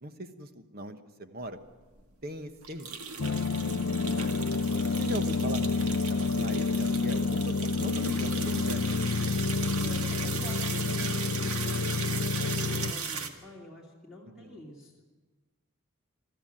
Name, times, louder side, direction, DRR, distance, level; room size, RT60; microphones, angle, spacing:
voice 1, 0.0-1.6 2.2-3.0 4.2-8.8 14.2-14.6, right 1 dB, 45° right, 9 dB, 1.2 m, -40 dB
sound 1, 1.7-1.8 2.0-2.1 2.6-13.3, right 5 dB, 80° right, 1.7 m, -37 dB
sound 2, 3.2-12.9, left 4 dB, 60° left, 0.5 m, -29 dB
voice 2, 9.8-14.9, equal, 5° right, -3 dB, 2.6 m, -46 dB
22.5 x 13.5 x 8.9 m, 1.3 s
head